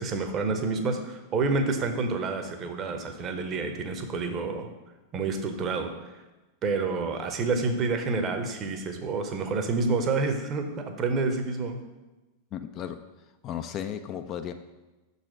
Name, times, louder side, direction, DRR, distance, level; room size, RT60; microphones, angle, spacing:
voice 1, 0.0-4.7 5.1-6.2 6.6-11.8, right 3 dB, 30° right, 6 dB, 0.8 m, -28 dB
voice 2, 12.5-13.0 13.4-14.5, left 9 dB, 35° left, 8 dB, 0.4 m, -34 dB
6.3 x 4.1 x 6.2 m, 1.1 s
figure-of-eight pair, 90°, 0 cm